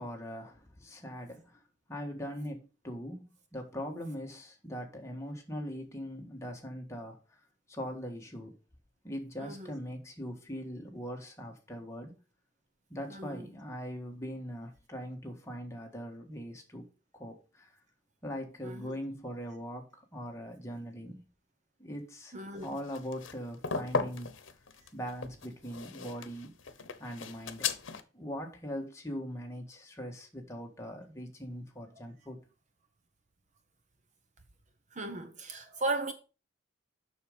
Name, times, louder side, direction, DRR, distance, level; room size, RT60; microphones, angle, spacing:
voice 1, 0.0-1.6 1.9-3.2 3.5-7.4 7.7-8.6 9.0-12.1 12.9-16.9 17.1-17.8 18.2-21.2 21.8-22.3 22.6-24.3 24.9-26.5 27.0-27.7 28.1-32.4, equal, 15° left, 1.6 m, -41 dB
voice 2, 9.4-9.7 13.1-13.5 18.6-19.0 22.3-22.8 34.9-36.1, right 2 dB, 40° right, 0.9 m, -36 dB
sound 1, 22.6-28.0, left 5 dB, 85° left, 0.9 m, -37 dB
7.1 x 6.4 x 5.2 m
head